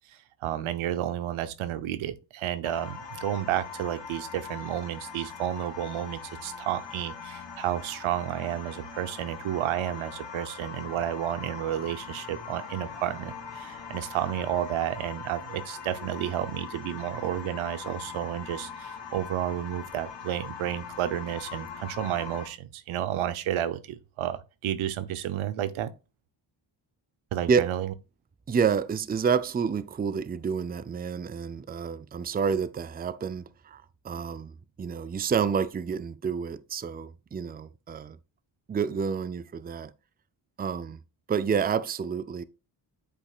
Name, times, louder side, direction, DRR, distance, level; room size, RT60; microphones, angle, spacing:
voice 1, 0.1-25.9 27.3-27.9, right 11 dB, 90° right, 0.8 m, -31 dB
sound 1, 2.6-22.5, left 6 dB, 65° left, 2.1 m, -41 dB
voice 2, 28.5-34.5 34.8-38.2 38.7-39.9 40.6-41.0 41.3-42.4, right 6 dB, 20° right, 0.5 m, -29 dB
8.6 x 5.3 x 2.4 m
cardioid pair, 80°, 47 cm